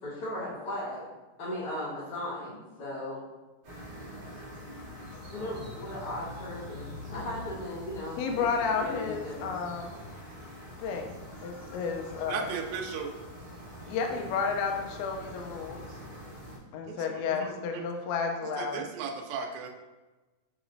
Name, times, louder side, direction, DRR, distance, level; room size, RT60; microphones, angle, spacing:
voice 1, 0.0-1.1 1.4-3.2 5.3-8.5 8.8-9.5 17.3-17.6, left 1 dB, 55° left, -13 dB, 1.8 m, -37 dB
sound 1, 3.6-16.6, left 1 dB, 65° right, 1.3 m, -44 dB
voice 2, 8.2-10.0 10.8-12.5 13.9-15.8 16.7-18.8, left 5 dB, 85° left, 2 dB, 1.5 m, -32 dB
voice 3, 12.3-13.1 16.9-17.8 18.6-19.7, right 6 dB, 80° right, 2 dB, 1.8 m, -36 dB
4.9 x 3.1 x 2.5 m, 1.2 s
omnidirectional pair, 3.7 m